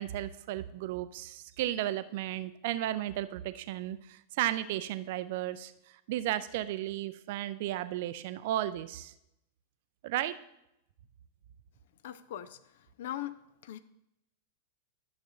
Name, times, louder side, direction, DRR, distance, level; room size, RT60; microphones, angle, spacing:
voice 1, 0.0-9.1 10.0-10.4, right 13 dB, 50° right, 14 dB, 0.4 m, -34 dB
voice 2, 12.0-12.6 13.0-13.4 13.6-13.8, left 12 dB, 55° left, 14 dB, 0.4 m, -39 dB
11.5 x 6.8 x 2.7 m, 0.83 s
figure-of-eight pair, 90°, 0 cm